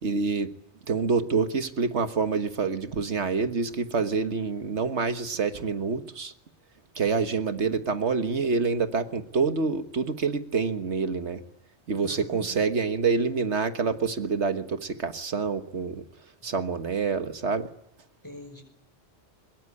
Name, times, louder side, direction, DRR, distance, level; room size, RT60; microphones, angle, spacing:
voice 1, 0.0-0.5 0.9-6.3 7.0-11.4 11.9-16.0 16.4-17.7, right 4 dB, 75° right, 9 dB, 1.7 m, -27 dB
voice 2, 12.0-12.5 18.2-18.6, left 2 dB, 15° left, 7 dB, 5.5 m, -43 dB
23.0 x 21.5 x 9.7 m, 0.76 s
omnidirectional pair, 1.2 m